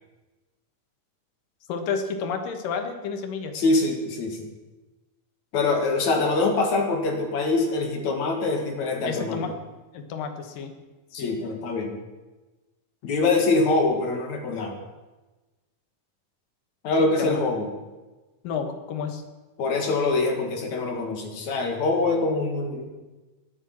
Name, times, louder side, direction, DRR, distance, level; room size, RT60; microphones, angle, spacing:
voice 1, 1.7-3.5 9.0-9.5 9.9-10.7 11.2-11.4 17.0-17.4 18.4-19.2, left 5 dB, 90° left, 7 dB, 3.2 m, -31 dB
voice 2, 3.5-4.4 5.5-9.4 11.1-12.0 13.0-14.8 16.8-17.7 19.6-22.9, left 3 dB, 60° left, 3 dB, 3.2 m, -24 dB
17.5 x 13.0 x 6.0 m, 1.2 s
omnidirectional pair, 3.8 m